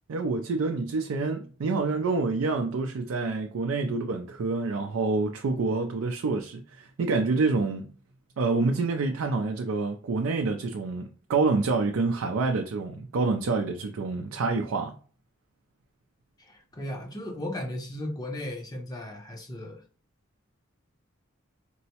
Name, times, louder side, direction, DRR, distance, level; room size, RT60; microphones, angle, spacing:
voice 1, 0.1-7.8 8.4-14.9, right 3 dB, 85° right, 0.4 m, -27 dB
voice 2, 16.4-19.8, left 1 dB, 20° left, 0.6 m, -36 dB
4.5 x 2.0 x 2.8 m
head